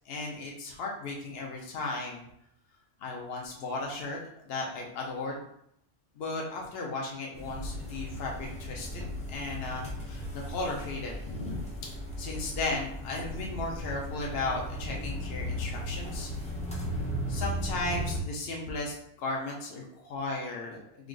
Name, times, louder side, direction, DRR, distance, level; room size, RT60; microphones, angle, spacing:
voice 1, 0.1-2.3 3.0-4.2 4.5-5.4 6.2-9.0 9.3-11.6 12.2-16.3 17.3-21.1, left 2 dB, 65° left, -1 dB, 0.9 m, -35 dB
sound 1, 7.3-18.2, equal, 5° left, 0.7 m, -36 dB
3.5 x 2.4 x 3.8 m, 0.71 s
omnidirectional pair, 1.2 m